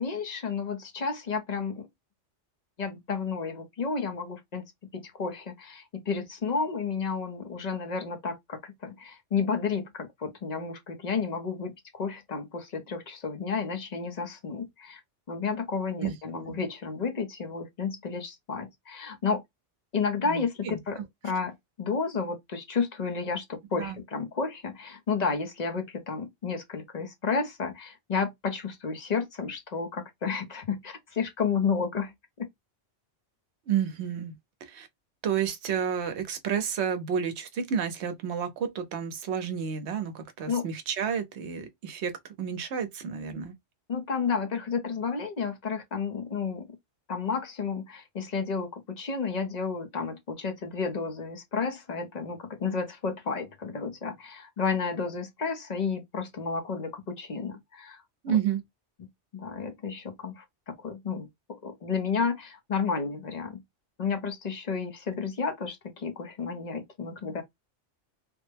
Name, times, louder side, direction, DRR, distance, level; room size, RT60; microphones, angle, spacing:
voice 1, 0.0-1.9 2.8-4.6 4.9-15.0 15.3-19.4 19.9-32.5 40.5-40.7 43.9-46.7 47.1-58.0 58.3-58.4 59.0-59.1 59.3-63.6 64.0-67.4, left 5 dB, 45° left, 0.7 m, -31 dB
voice 2, 16.0-16.6 20.3-20.8 23.8-24.0 33.7-34.3 34.6-34.9 35.2-42.1 42.4-43.5 58.2-58.6, right 8 dB, 70° right, 0.9 m, -30 dB
3.3 x 2.1 x 3.3 m
omnidirectional pair, 1.2 m